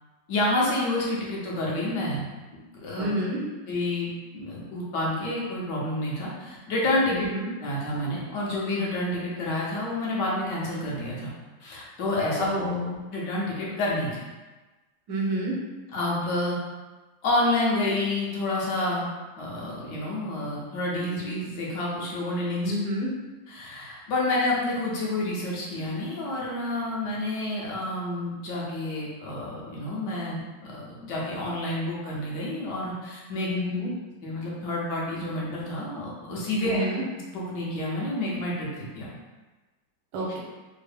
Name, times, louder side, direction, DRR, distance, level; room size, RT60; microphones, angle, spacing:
voice 1, 0.3-3.1 3.7-7.3 7.6-11.3 11.6-12.7 13.1-14.2 15.9-16.6 17.2-19.1 19.4-22.7 23.5-33.5 34.2-36.8 37.3-39.1, left 1 dB, 70° left, -5 dB, 1.3 m, -29 dB
voice 2, 2.9-3.4 7.1-7.5 12.4-13.0 15.1-15.6 22.6-23.1 33.4-33.9 36.6-37.0 40.1-40.4, equal, 75° right, -3 dB, 1.3 m, -29 dB
3.5 x 2.1 x 3.3 m, 1.2 s
omnidirectional pair, 2.0 m